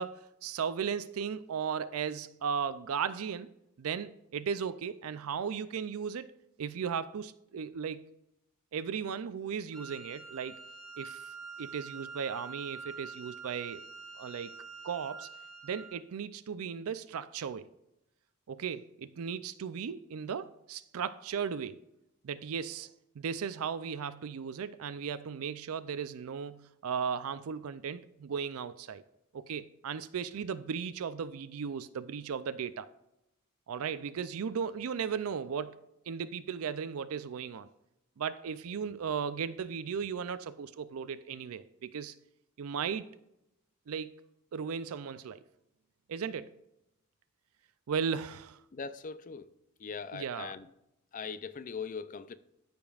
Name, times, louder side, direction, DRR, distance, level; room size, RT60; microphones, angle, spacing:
voice 1, 0.0-3.5 3.8-6.3 6.6-8.1 8.7-10.6 11.0-11.3 11.6-13.8 14.2-14.5 14.8-15.3 15.6-17.7 18.5-21.8 22.2-22.9 23.2-29.0 29.3-32.9 33.7-37.7 38.2-42.2 42.6-43.1 43.9-44.1 44.5-45.4 46.1-46.5 47.9-48.6 50.1-50.5, right 7 dB, 80° right, 0.4 m, -36 dB
Wind instrument woodwind instrument, 9.7-16.1, right 5 dB, ahead, 1.4 m, -46 dB
voice 2, 48.7-49.5 49.8-50.7 51.1-52.4, left 5 dB, 35° left, 0.4 m, -40 dB
13.5 x 5.2 x 2.4 m
head